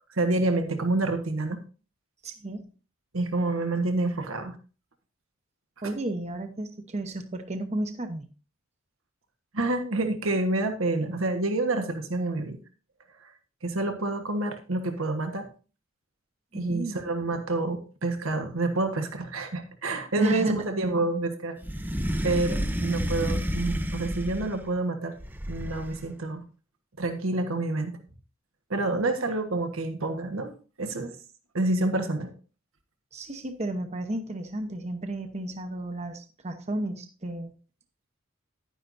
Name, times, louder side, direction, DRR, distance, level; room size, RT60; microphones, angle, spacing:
voice 1, 0.1-1.6 3.1-4.6 9.5-12.6 13.2-13.3 13.6-15.5 16.5-21.6 22.2-25.1 25.5-26.4 27.0-28.0 28.7-30.5 30.8-31.2 31.5-32.3, right 2 dB, 90° right, 5 dB, 1.4 m, -28 dB
voice 2, 2.2-2.7 5.8-8.2 16.5-16.9 20.2-20.7 22.5-22.6 28.9-29.1 33.1-37.5, right 1 dB, 35° right, 7 dB, 0.9 m, -32 dB
sound 1, 21.6-24.7 25.2-26.1, equal, 10° right, 0.6 m, -30 dB
11.5 x 9.9 x 2.7 m, 0.36 s
head